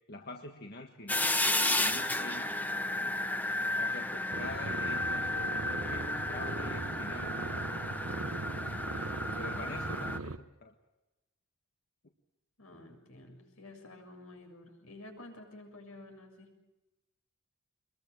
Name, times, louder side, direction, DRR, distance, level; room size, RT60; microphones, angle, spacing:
voice 1, 0.1-3.1 3.8-8.0 8.5-9.1 9.4-10.7, left 2 dB, 45° left, 3 dB, 1.7 m, -46 dB
sound 1, 1.1-10.2, left 2 dB, 10° left, 1.0 m, -33 dB
sound 2, 4.3-10.4, right 3 dB, 70° right, 1.1 m, -39 dB
voice 2, 12.6-16.6, left 2 dB, 75° left, 4 dB, 7.2 m, -51 dB
24.5 x 22.0 x 7.9 m, 1.0 s
head